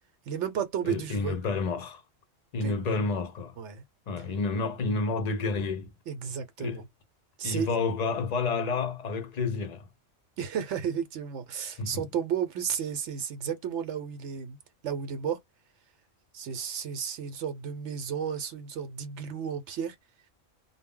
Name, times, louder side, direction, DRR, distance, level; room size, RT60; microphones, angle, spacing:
voice 1, 0.3-1.4 2.6-3.0 3.6-3.8 6.1-6.8 7.4-7.8 10.4-14.6 14.8-15.4 16.3-20.0, right 8 dB, 70° right, 0.9 m, -33 dB
voice 2, 0.8-2.0 2.5-3.6 4.1-5.9 6.6-6.8 7.4-9.9 11.8-12.0, left 4 dB, 55° left, 0.4 m, -30 dB
2.1 x 2.0 x 3.5 m
omnidirectional pair, 1.3 m